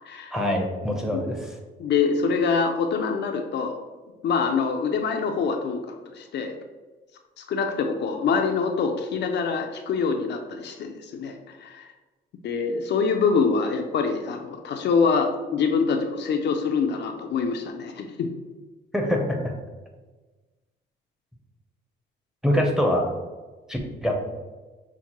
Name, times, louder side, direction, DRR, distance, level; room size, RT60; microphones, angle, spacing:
voice 1, 0.3-1.5 18.9-19.5 22.4-23.1 23.7-24.2, equal, 5° right, 1 dB, 0.7 m, -24 dB
voice 2, 1.8-3.8 4.2-6.6 7.4-11.9 12.4-18.3, left 5 dB, 60° left, 4 dB, 0.4 m, -25 dB
5.8 x 2.1 x 2.9 m, 1.3 s
cardioid pair, 90°, 20 cm